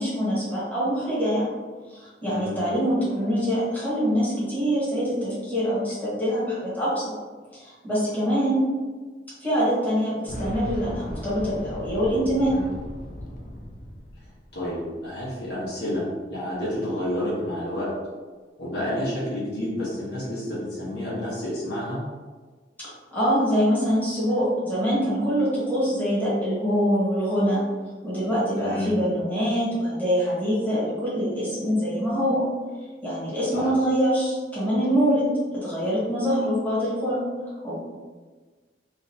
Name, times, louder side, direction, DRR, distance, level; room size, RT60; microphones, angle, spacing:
voice 1, 0.0-1.5 1.9-7.1 7.5-8.6 9.4-12.5 23.1-27.6 28.0-32.4 33.0-35.2 35.5-37.2 37.6-37.8, equal, 10° left, -11 dB, 1.4 m, -24 dB
voice 2, 2.3-2.6 12.4-12.7 14.5-17.9 18.6-22.0 28.6-28.9 33.5-33.7, left 1 dB, 65° left, -7 dB, 1.3 m, -30 dB
Boom, 10.3-15.0 15.3-15.4 16.5-16.6, equal, 45° left, 0.6 m, -37 dB
3.8 x 2.5 x 2.8 m, 1.4 s
head